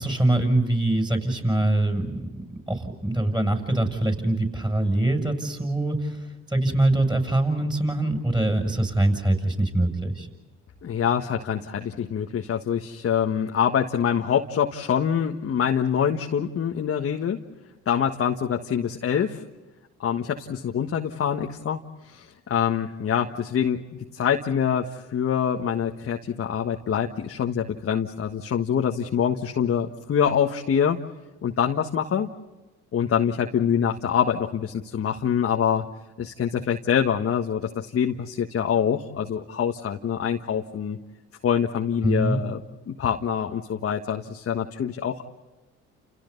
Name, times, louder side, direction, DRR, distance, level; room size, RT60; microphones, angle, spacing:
voice 1, 0.0-2.4 2.7-10.3 42.0-42.4, right 1 dB, 15° right, 6 dB, 7.2 m, -23 dB
voice 2, 10.8-17.4 17.8-19.4 20.0-23.8 24.1-31.0 31.4-32.3 32.9-35.8 36.2-41.0 41.4-42.6 42.9-45.2, left 8 dB, 50° left, 2 dB, 1.6 m, -25 dB
30.0 x 29.5 x 4.1 m, 1.2 s
hypercardioid pair, 60°, 30 cm